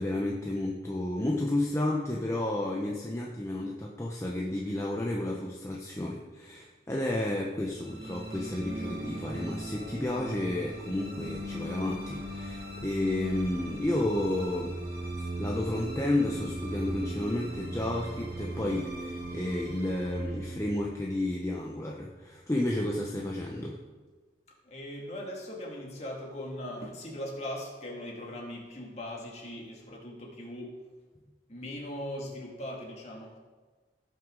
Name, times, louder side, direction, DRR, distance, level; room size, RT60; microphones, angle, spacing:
voice 1, 0.0-14.7 15.2-23.8, left 1 dB, 15° left, -2 dB, 0.7 m, -31 dB
sound 1, 7.7-22.0, right 1 dB, 65° right, 2.4 m, -39 dB
voice 2, 24.7-30.8 31.5-33.4, left 1 dB, 40° left, -2 dB, 2.0 m, -39 dB
16.5 x 6.1 x 3.8 m, 1.4 s
head